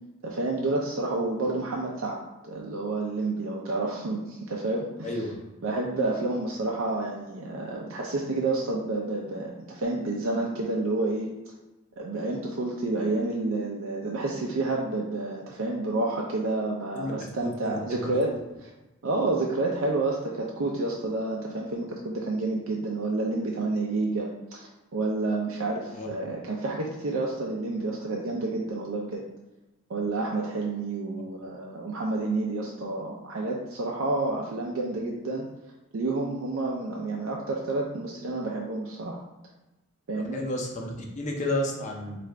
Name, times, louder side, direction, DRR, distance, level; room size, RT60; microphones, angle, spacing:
voice 1, 0.2-5.1 5.6-11.3 12.0-18.3 18.6-18.7 19.0-29.2 29.9-35.5 35.9-39.2 40.1-40.4, right 2 dB, 85° right, -2 dB, 0.5 m, -29 dB
voice 2, 5.0-5.3 16.9-17.1 17.4-18.0 25.9-26.1 40.1-42.2, left 1 dB, 35° left, 0 dB, 0.7 m, -32 dB
4.7 x 2.5 x 3.2 m, 1.0 s
head